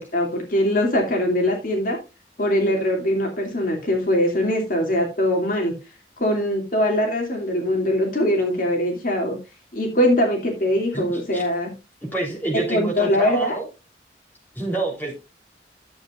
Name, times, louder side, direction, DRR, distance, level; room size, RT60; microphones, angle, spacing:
voice 1, 0.0-2.0 2.4-5.7 6.2-9.4 9.7-11.7 12.7-13.6, left 1 dB, 50° left, 1 dB, 2.5 m, -22 dB
voice 2, 10.9-11.5 12.0-13.7 14.6-15.1, right 2 dB, 10° left, -2 dB, 3.5 m, -27 dB
13.0 x 7.8 x 2.5 m, 0.27 s
head